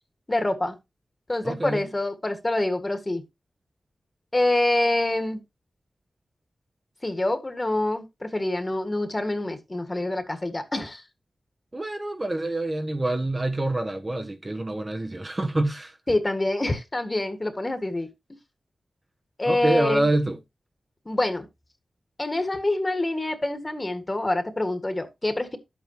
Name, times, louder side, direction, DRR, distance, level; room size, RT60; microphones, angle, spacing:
voice 1, 0.3-0.8 1.3-3.2 4.3-5.4 7.0-11.0 16.1-18.1 19.4-20.1 21.1-21.5 22.2-25.6, left 2 dB, 25° left, 1.8 m, -26 dB
voice 2, 1.4-1.9 11.7-16.0 19.4-20.4, right 1 dB, 30° right, 1.0 m, -26 dB
11.0 x 8.4 x 3.0 m
wide cardioid pair, 75°, 0 cm